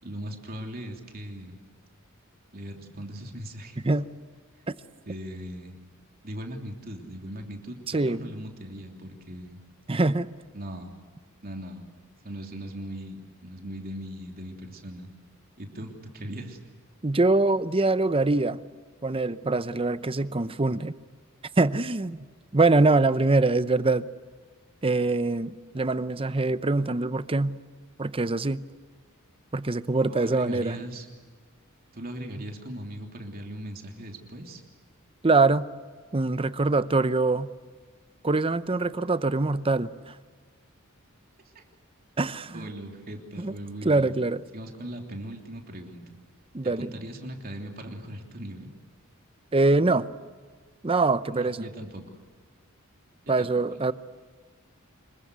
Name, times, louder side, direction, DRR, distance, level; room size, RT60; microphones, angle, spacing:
voice 1, 0.0-1.6 2.5-3.8 5.1-5.8 6.2-9.6 10.5-10.9 11.4-11.9 12.2-15.1 15.6-16.6 30.0-31.1 31.9-34.6 41.5-41.6 42.5-44.2 44.5-46.0 46.6-48.7 51.3-52.0 53.4-53.8, equal, 45° right, 2 dB, 3.2 m, -39 dB
voice 2, 7.9-8.2 9.9-10.3 17.0-18.6 19.0-20.9 21.6-22.3 22.5-24.1 24.8-27.6 28.0-28.6 29.5-30.8 35.2-35.7 36.1-37.5 38.2-40.1 42.2-42.7 43.4-43.5 43.8-44.4 46.5-46.9 49.5-50.1 50.8-51.6 53.3-53.9, right 3 dB, 25° right, 14 dB, 0.7 m, -24 dB
26.5 x 23.0 x 8.2 m, 1.5 s
head